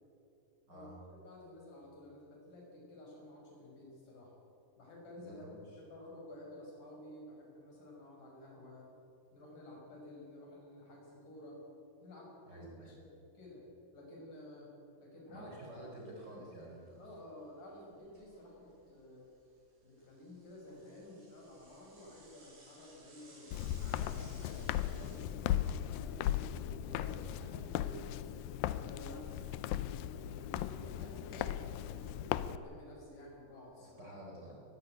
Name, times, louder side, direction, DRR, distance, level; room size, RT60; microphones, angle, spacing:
voice 1, 0.7-4.3 4.8-5.5 5.8-8.9 9.3-11.6 12.0-13.6 13.9-14.7 15.0-15.5 16.0-16.5 17.0-19.2 19.8-23.5 23.9-27.1 27.4-28.0 28.7-34.0, left 1 dB, 50° left, -2 dB, 7.1 m, -52 dB
voice 2, 5.2-5.8 12.5-12.9 15.3-17.0 25.3-25.4 26.9-27.5 33.8-34.6, right 1 dB, 25° right, -3 dB, 4.1 m, -50 dB
Bicycle / Mechanisms, 15.9-16.3 16.6-16.7 17.0-17.1 17.7-18.9 19.3-25.2, right 2 dB, 80° right, 8.0 m, -61 dB
Walk footsteps, 23.5-32.6, left 12 dB, 80° left, 2.1 m, -37 dB
21.5 x 15.5 x 9.0 m, 2.7 s
omnidirectional pair, 4.7 m